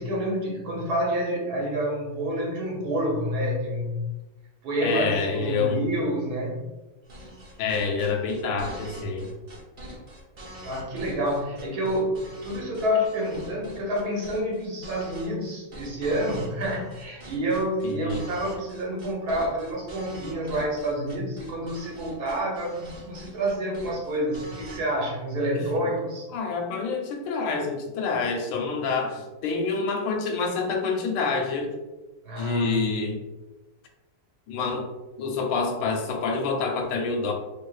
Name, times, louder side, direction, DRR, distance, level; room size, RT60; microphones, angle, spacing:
voice 1, 0.0-4.0 4.6-6.7 10.6-26.3 32.2-32.8, equal, 60° right, -3 dB, 1.3 m, -28 dB
voice 2, 4.8-5.8 7.6-9.3 17.8-18.2 25.5-25.6 26.3-31.7 32.4-33.2 34.5-34.9 35.2-37.3, left 4 dB, 90° left, 3 dB, 1.3 m, -27 dB
sound 1, 7.1-24.8, right 1 dB, 85° right, 0.4 m, -43 dB
3.6 x 3.2 x 2.3 m, 1.1 s
omnidirectional pair, 2.0 m